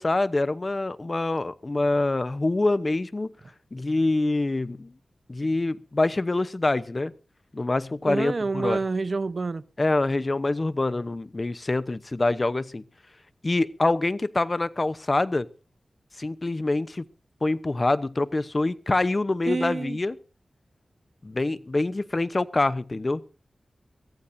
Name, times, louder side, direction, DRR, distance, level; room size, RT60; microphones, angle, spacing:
voice 1, 0.0-3.3 3.7-4.9 5.3-7.1 7.5-8.8 9.8-12.8 13.4-15.5 16.2-17.0 17.4-20.2 21.2-23.2, left 2 dB, 40° left, 0.9 m, -25 dB
voice 2, 8.0-9.6 19.5-20.0, right 3 dB, 55° right, 0.9 m, -27 dB
23.5 x 15.0 x 2.7 m
cardioid pair, 55°, 0 cm